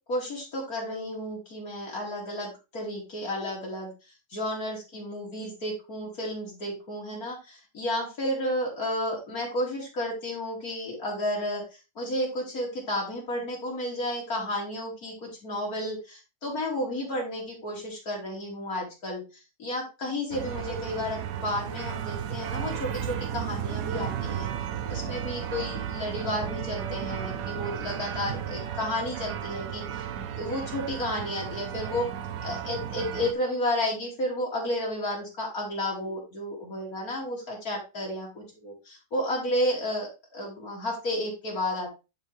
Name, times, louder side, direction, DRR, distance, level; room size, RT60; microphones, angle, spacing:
voice 1, 0.1-3.9 4.3-11.6 12.0-19.2 19.6-24.5 24.9-30.1 30.4-32.1 32.4-41.9, left 1 dB, 65° left, -2 dB, 3.4 m, -32 dB
sound 1, 20.3-33.3, right 9 dB, 65° right, 1.1 m, -34 dB
10.5 x 4.7 x 3.4 m, 0.29 s
omnidirectional pair, 1.7 m